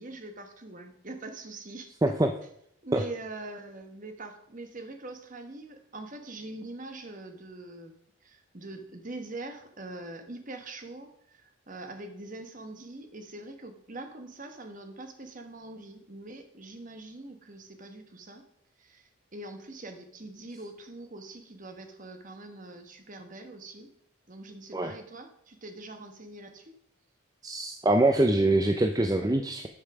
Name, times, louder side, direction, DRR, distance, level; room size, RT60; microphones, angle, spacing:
voice 1, 0.0-2.2 2.8-18.5 18.8-23.9 24.3-26.7, right 2 dB, 35° right, 6 dB, 1.2 m, -43 dB
voice 2, 27.4-29.7, right 1 dB, 15° right, 6 dB, 0.5 m, -24 dB
10.0 x 5.5 x 6.0 m, 0.70 s
head